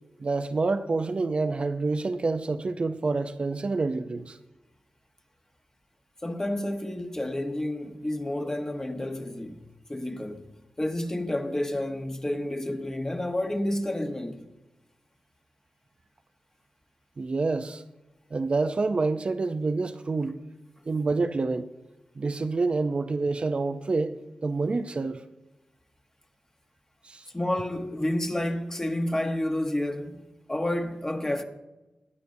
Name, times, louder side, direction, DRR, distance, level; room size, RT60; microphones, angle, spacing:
voice 1, 0.2-4.4 17.2-17.8 18.3-20.4 20.9-21.7 22.2-25.2 27.0-27.3, right 3 dB, 45° right, 0.5 m, -27 dB
voice 2, 6.2-9.6 9.9-10.4 10.8-14.4 27.3-31.4, left 1 dB, 20° left, 1.0 m, -30 dB
20.5 x 8.3 x 2.7 m
cardioid pair, 60°, 3 cm